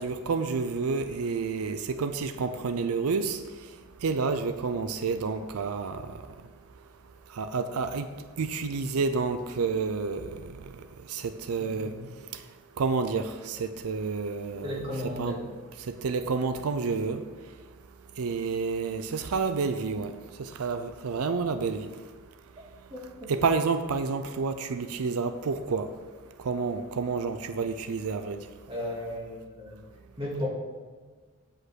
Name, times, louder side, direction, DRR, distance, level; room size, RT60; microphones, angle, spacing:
voice 1, 0.0-3.4 4.0-6.1 7.3-8.1 8.4-10.5 11.1-11.9 12.8-15.4 15.9-17.2 18.2-20.1 20.4-21.9 23.3-25.9 26.4-28.4, right 4 dB, 90° right, 9 dB, 0.5 m, -29 dB
voice 2, 11.6-11.9 14.6-15.4 22.9-23.3 28.7-29.8 30.2-30.5, left 1 dB, 25° right, -4 dB, 2.0 m, -35 dB
8.5 x 5.2 x 6.3 m, 1.5 s
head